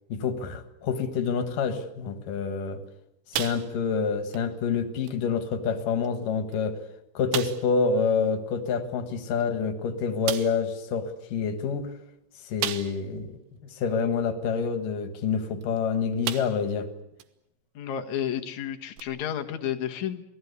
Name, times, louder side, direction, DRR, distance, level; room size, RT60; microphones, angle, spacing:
voice 1, 0.1-2.8 3.3-6.8 7.1-11.9 12.5-13.4 13.7-16.9, left 5 dB, 60° left, 9 dB, 2.4 m, -27 dB
sound 1, 3.3-4.0 4.3-4.5 5.1-5.2 6.0-6.1 6.5-6.6 7.3-7.7 9.4-9.5 10.3-10.7 12.6-13.2 13.7-13.8 15.6-15.8 16.2-16.7 17.2-17.3 19.0-19.1, right 12 dB, 70° right, 3.0 m, -33 dB
voice 2, 17.7-20.2, left 10 dB, 90° left, 5 dB, 1.6 m, -31 dB
28.5 x 19.0 x 8.3 m, 0.82 s
omnidirectional pair, 5.8 m